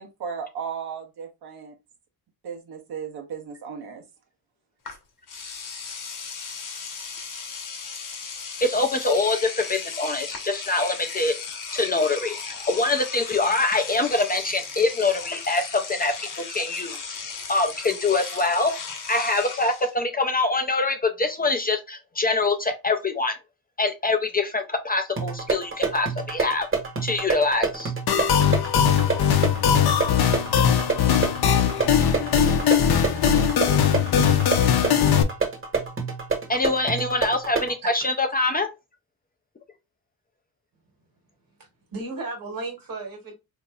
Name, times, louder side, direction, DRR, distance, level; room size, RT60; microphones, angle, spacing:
voice 1, 0.0-1.7 2.4-4.0, right 6 dB, 80° right, 1.0 m, -35 dB
Engine / Domestic sounds home sounds, 4.9-5.0 5.3-19.9, left 5 dB, 55° left, 1.0 m, -36 dB
voice 2, 8.6-11.3 11.7-17.2 17.5-18.7 19.1-23.4 23.8-26.7 27.0-27.9 36.5-38.7, left 3 dB, 25° left, 0.4 m, -24 dB
sound 1, 25.2-37.8, right 4 dB, 35° right, 1.0 m, -28 dB
sound 2, 28.1-35.2, left 9 dB, 75° left, 0.6 m, -20 dB
voice 3, 41.9-43.3, right 3 dB, 60° right, 1.5 m, -34 dB
3.9 x 2.9 x 2.3 m
wide cardioid pair, 140°, 38 cm